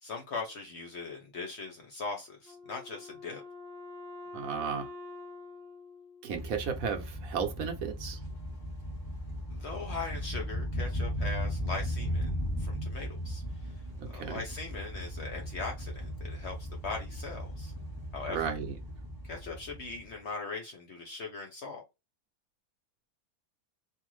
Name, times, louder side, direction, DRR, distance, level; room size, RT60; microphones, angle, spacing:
voice 1, 0.0-3.4 9.5-12.3 12.6-13.7 14.1-17.7 18.1-18.6 19.2-21.8, left 4 dB, 55° left, 0.8 m, -40 dB
Wind instrument woodwind instrument, 2.4-6.9, left 2 dB, ahead, 0.8 m, -46 dB
voice 2, 4.3-4.9 6.2-8.2 14.0-14.4 18.3-18.8, right 6 dB, 65° right, 1.1 m, -34 dB
sound 1, 6.3-20.1, equal, 25° right, 0.5 m, -37 dB
2.6 x 2.5 x 3.0 m
omnidirectional pair, 1.6 m